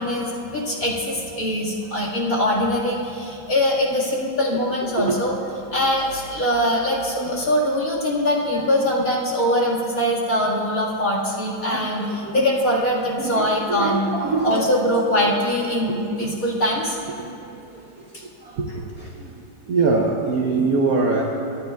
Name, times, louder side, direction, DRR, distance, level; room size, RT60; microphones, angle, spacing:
voice 1, 0.0-5.4 5.7-14.1 14.4-17.0 18.1-18.2 18.7-18.8, left 1 dB, 45° left, -4 dB, 2.1 m, -22 dB
voice 2, 11.7-12.5 13.2-14.6 17.2-17.3 17.7-17.9 18.4-18.7 19.0-19.3 19.7-21.2, right 3 dB, 60° right, 0 dB, 1.0 m, -23 dB
24.5 x 10.5 x 2.3 m, 2.6 s
omnidirectional pair, 2.3 m